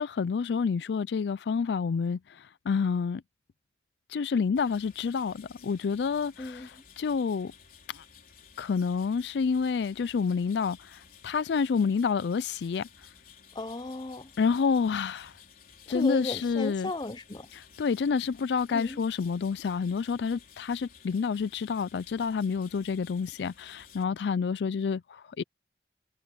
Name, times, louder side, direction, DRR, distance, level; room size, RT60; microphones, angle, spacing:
voice 1, 0.0-3.2 4.1-7.5 7.9-8.0 8.6-12.9 14.4-15.3 15.9-16.9 17.5-25.4, left 5 dB, 70° left, 0.4 m, -29 dB
sound 1, 4.6-24.1, left 7 dB, 50° left, 4.1 m, -55 dB
voice 2, 13.5-14.3 15.9-17.5 18.7-19.0, left 2 dB, 25° left, 0.7 m, -35 dB
head